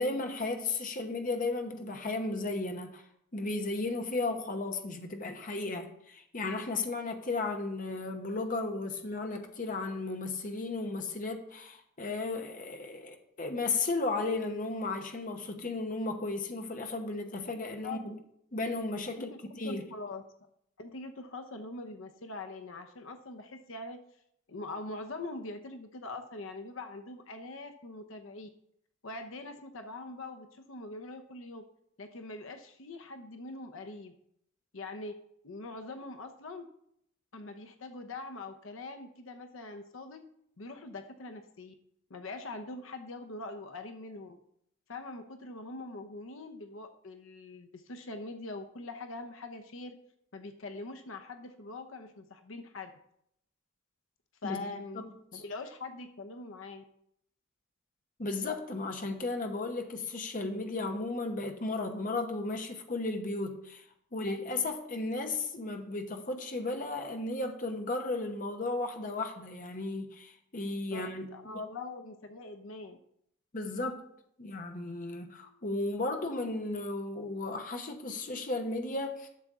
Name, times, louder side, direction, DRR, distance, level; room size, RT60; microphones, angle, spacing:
voice 1, 0.0-3.0 3.3-18.2 18.5-19.3 19.6-19.8 54.4-54.7 54.9-55.0 55.3-55.4 58.2-63.8 64.1-71.3 73.5-74.1 74.4-79.3, left 3 dB, 40° left, 1.0 m, -34 dB
voice 2, 19.6-20.2 20.8-24.0 24.5-28.5 29.0-31.6 32.0-34.1 34.7-35.2 35.4-36.7 37.3-40.2 40.6-41.7 42.1-44.4 44.9-50.0 50.3-52.9 54.4-55.0 55.3-56.8 70.9-71.1 71.3-73.0, left 2 dB, 75° left, 0.8 m, -43 dB
11.5 x 6.9 x 3.7 m
head